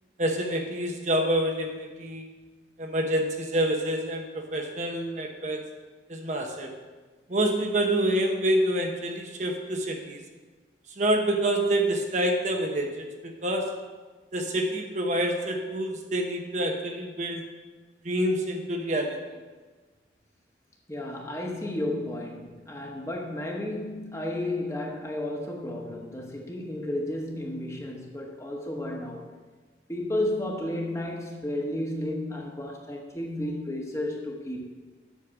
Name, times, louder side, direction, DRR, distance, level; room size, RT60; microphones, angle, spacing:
voice 1, 0.2-2.3 2.8-5.6 6.1-6.7 7.3-10.2 11.0-13.8 14.3-17.5 18.0-19.2, right 1 dB, 45° right, 3 dB, 1.0 m, -27 dB
voice 2, 20.9-29.3 29.9-34.6, left 1 dB, 15° left, 0 dB, 1.2 m, -32 dB
8.3 x 6.4 x 7.3 m, 1.3 s
head